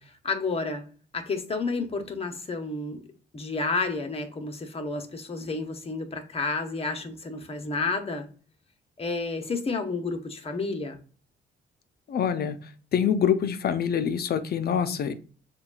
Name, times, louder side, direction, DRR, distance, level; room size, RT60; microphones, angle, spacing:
voice 1, 0.0-0.9 1.1-3.0 3.3-8.3 9.0-11.0, left 3 dB, 30° left, 5 dB, 0.9 m, -31 dB
voice 2, 12.1-12.6 12.9-15.1, left 8 dB, 50° left, 10 dB, 0.5 m, -25 dB
6.8 x 2.3 x 2.4 m, 0.41 s
cardioid pair, 90°, 20 cm